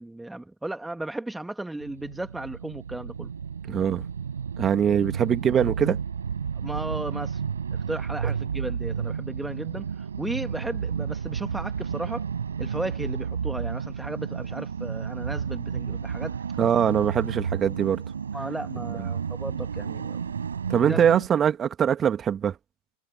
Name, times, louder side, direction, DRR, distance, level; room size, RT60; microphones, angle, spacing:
voice 1, 0.0-3.3 6.6-7.4 7.7-12.3 12.6-16.4 18.3-20.2 20.8-21.1, right 2 dB, 5° right, 2.1 m, -35 dB
sound 1, 1.8-21.3, right 7 dB, 70° right, 6.8 m, -32 dB
voice 2, 3.7-4.0 4.6-6.0 16.6-18.0 20.7-22.5, right 8 dB, 25° right, 2.7 m, -22 dB
figure-of-eight pair, 90°, 0 cm